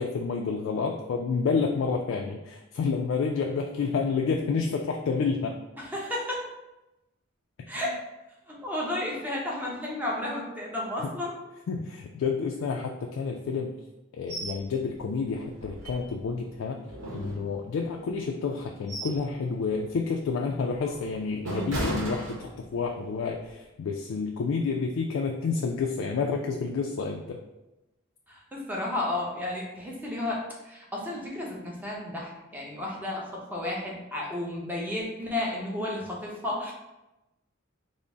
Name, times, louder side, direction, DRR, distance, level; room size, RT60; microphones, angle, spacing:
voice 1, 0.0-5.6 7.6-7.9 11.7-13.8 14.1-16.8 17.1-27.4, left 5 dB, 80° left, 1 dB, 0.3 m, -29 dB
voice 2, 5.8-6.4 7.7-7.9 8.5-11.3 28.3-36.7, left 1 dB, 10° right, -3 dB, 0.7 m, -32 dB
sound 1, 14.3-14.6 15.0-15.1 15.5-16.4 16.9-17.9 18.5-19.3 19.7-19.9 20.5-22.9 23.3-23.5, right 1 dB, 75° right, 0.9 m, -36 dB
3.8 x 2.0 x 3.4 m, 0.97 s
head